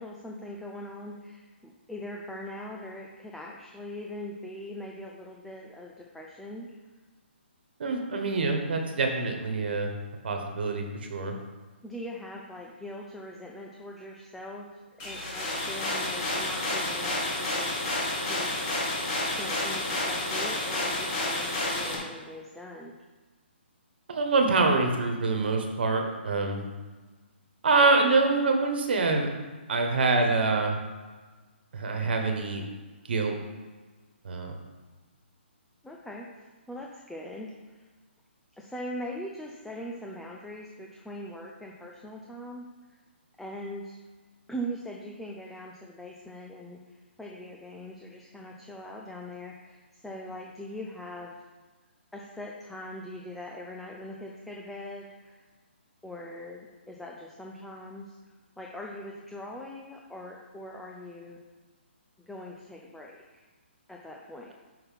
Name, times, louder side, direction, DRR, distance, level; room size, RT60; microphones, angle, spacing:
voice 1, 0.0-6.7 11.8-14.7 15.0-18.7 19.3-22.9 35.8-37.8 38.6-43.0 43.4-44.0 44.5-51.3 52.1-55.4 56.0-58.2 58.6-61.4 62.3-63.4 63.9-64.5, equal, ahead, -2 dB, 0.4 m, -41 dB
voice 2, 7.8-9.9 10.2-10.8 11.1-11.3 24.1-26.6 27.6-29.3 29.7-30.8 31.7-32.6 33.1-33.4 34.2-34.5, right 3 dB, 55° right, 3 dB, 1.4 m, -25 dB
sound 1, 15.0-21.9, left 2 dB, 25° left, 1.7 m, -30 dB
5.6 x 5.5 x 5.7 m, 1.3 s
hypercardioid pair, 170°, 6 cm